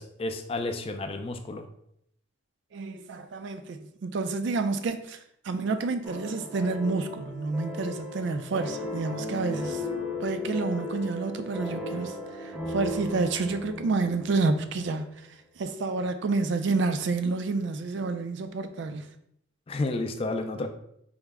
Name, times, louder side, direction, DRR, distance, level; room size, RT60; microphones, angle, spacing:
voice 1, 0.0-1.7 19.7-20.7, left 2 dB, 30° left, 7 dB, 0.3 m, -31 dB
voice 2, 2.7-5.2 5.4-9.8 10.2-12.1 12.7-15.1 15.6-19.1, right 3 dB, 60° right, 9 dB, 0.4 m, -29 dB
sound 1, 6.0-15.1, left 1 dB, 5° right, 0.7 m, -36 dB
4.7 x 2.1 x 3.4 m, 0.73 s
head